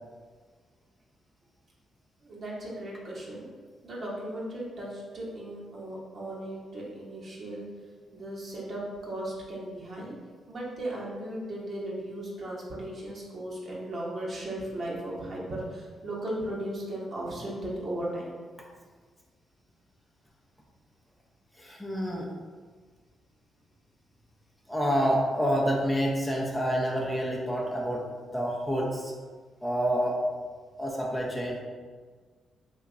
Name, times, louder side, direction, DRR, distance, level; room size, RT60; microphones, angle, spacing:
voice 1, 2.2-3.5 3.8-7.6 8.1-10.1 10.5-18.4, right 1 dB, 50° right, -5 dB, 1.0 m, -36 dB
voice 2, 21.6-22.3 24.7-28.0 28.3-29.1 29.6-30.2 30.8-31.6, equal, 10° left, -3 dB, 0.7 m, -28 dB
2.9 x 2.3 x 3.7 m, 1.5 s
supercardioid pair, 55°, 0 cm